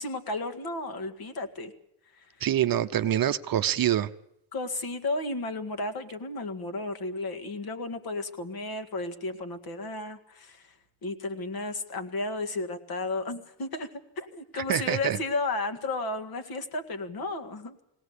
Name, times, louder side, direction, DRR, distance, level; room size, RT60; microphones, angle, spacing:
voice 1, 0.0-1.7 2.2-2.3 4.5-10.7 11.0-17.8, left 2 dB, 50° left, 8 dB, 2.0 m, -33 dB
voice 2, 2.4-4.1 14.7-15.2, right 10 dB, 45° right, 10 dB, 0.8 m, -25 dB
21.0 x 18.0 x 8.1 m, 0.79 s
cardioid pair, 165°, 48 cm